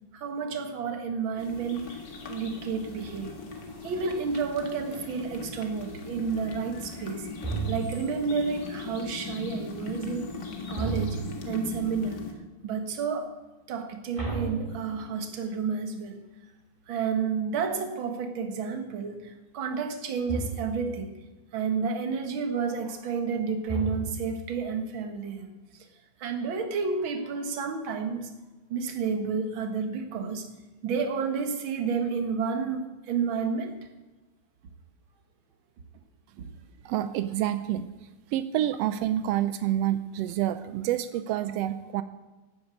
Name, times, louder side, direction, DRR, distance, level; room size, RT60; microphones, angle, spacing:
voice 1, 0.1-2.0 2.3-7.3 7.7-10.3 10.7-11.2 11.5-12.2 12.6-13.3 13.7-16.2 16.9-21.2 21.5-25.5 26.2-28.3 28.7-30.5 30.8-33.7, right 5 dB, 50° right, 6 dB, 1.8 m, -30 dB
sound 1, 1.4-12.3, left 4 dB, 40° left, 1.9 m, -39 dB
sound 2, 7.4-8.2 10.7-11.5 14.2-15.3 20.3-20.9 23.7-24.5, right 4 dB, 10° right, 2.1 m, -33 dB
voice 2, 36.8-37.9 38.3-42.0, right 12 dB, 85° right, 11 dB, 1.4 m, -28 dB
12.0 x 9.0 x 8.3 m, 1.2 s
omnidirectional pair, 3.5 m